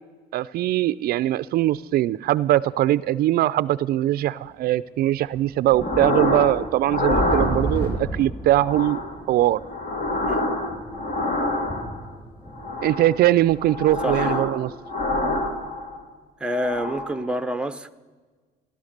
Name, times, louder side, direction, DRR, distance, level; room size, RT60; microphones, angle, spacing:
voice 1, 0.3-9.0 9.3-9.6 12.8-14.7, right 14 dB, 65° right, 0.4 m, -21 dB
sound 1, 1.6-1.7 2.8-2.9 4.0-4.1 4.4-4.5 5.1-15.2 15.5-15.7, right 1 dB, 15° left, 2.6 m, -34 dB
sound 2, 5.8-6.6 6.9-8.0 8.5-9.2 9.6-12.0 12.5-13.2 13.6-14.6 14.8-16.0 16.5-17.2, left 2 dB, 50° left, 2.3 m, -26 dB
voice 2, 14.0-14.4 16.4-17.9, equal, 5° right, 0.7 m, -27 dB
16.0 x 11.5 x 6.6 m
cardioid pair, 110°, 17 cm